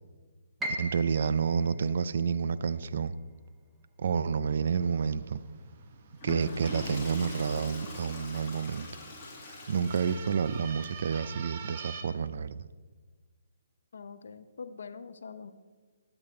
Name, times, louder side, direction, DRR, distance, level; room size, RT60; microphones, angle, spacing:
Piano, 0.6-6.5 6.9-8.0 8.4-8.5 9.2-9.6, right 1 dB, 10° right, 0.8 m, -43 dB
voice 1, 0.7-3.1 4.0-5.4 6.2-8.9 9.7-12.7, right 6 dB, 55° right, 14 dB, 0.4 m, -29 dB
sound 1, 4.6-12.0, right 6 dB, 40° right, 0.8 m, -48 dB
Water / Toilet flush, 6.1-10.6, left 2 dB, 20° left, 1.9 m, -42 dB
voice 2, 13.9-15.5, left 5 dB, 65° left, 11 dB, 0.6 m, -44 dB
10.5 x 8.0 x 3.8 m, 1.4 s
hypercardioid pair, 155°, 0 cm